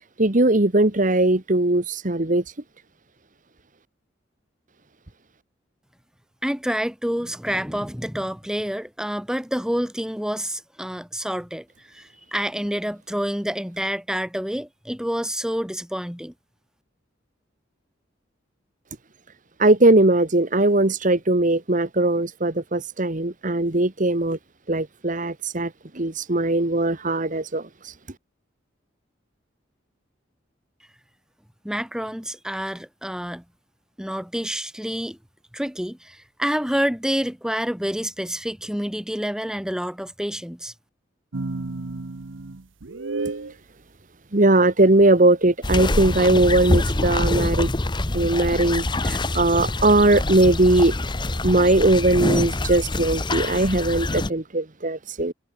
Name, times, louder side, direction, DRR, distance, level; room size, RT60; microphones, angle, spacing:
voice 1, 0.2-2.4 19.6-24.4 24.7-25.7 25.9-27.6 44.3-47.7 48.1-50.9 51.4-55.3, right 2 dB, 45° right, 1.6 m, -19 dB
voice 2, 6.4-11.6 11.9-16.3 31.6-33.4 34.0-35.2 35.5-40.7, equal, 5° right, 1.6 m, -28 dB
sound 1, 41.3-43.5, right 3 dB, 85° right, 1.0 m, -31 dB
sound 2, 45.6-54.3, left 2 dB, 25° left, 1.1 m, -25 dB
head